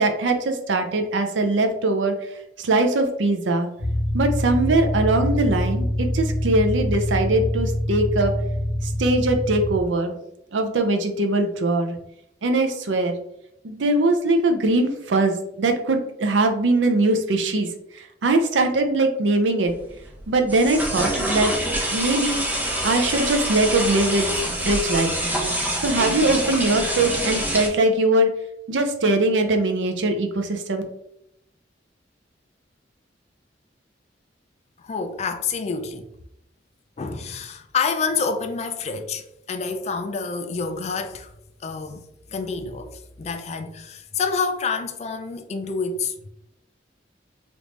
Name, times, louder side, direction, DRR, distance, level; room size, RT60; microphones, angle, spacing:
voice 1, 0.0-2.1 2.6-3.7 4.1-8.3 8.8-10.2 10.5-12.0 12.4-13.2 13.6-17.7 18.2-19.7 20.3-21.5 21.9-22.4 22.8-24.3 24.6-25.1 25.8-28.3 28.7-30.8, right 2 dB, 90° right, 0.6 m, -21 dB
sound 1, 3.8-9.8, left 1 dB, 50° right, 1.2 m, -25 dB
sound 2, 19.7-27.7, equal, 10° right, 0.7 m, -26 dB
voice 2, 34.8-36.1 37.0-41.3 41.6-46.1, left 5 dB, 35° left, 0.3 m, -28 dB
3.4 x 2.5 x 3.1 m
head